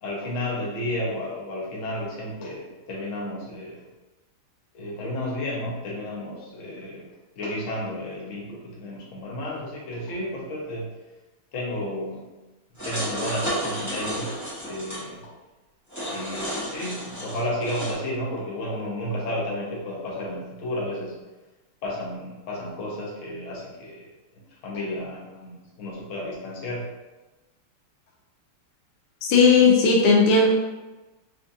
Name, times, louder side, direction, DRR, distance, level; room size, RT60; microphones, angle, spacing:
voice 1, 0.0-3.9 4.7-10.9 11.5-12.3 12.8-14.4 14.6-15.3 16.1-21.2 21.8-24.1 24.6-26.9, left 1 dB, 60° left, -3 dB, 0.8 m, -32 dB
sound 1, 12.8-15.0 15.9-17.9, equal, 25° left, 0.4 m, -32 dB
voice 2, 29.2-30.5, left 4 dB, 90° left, -1 dB, 1.6 m, -16 dB
4.4 x 2.4 x 2.6 m, 1.1 s
omnidirectional pair, 2.3 m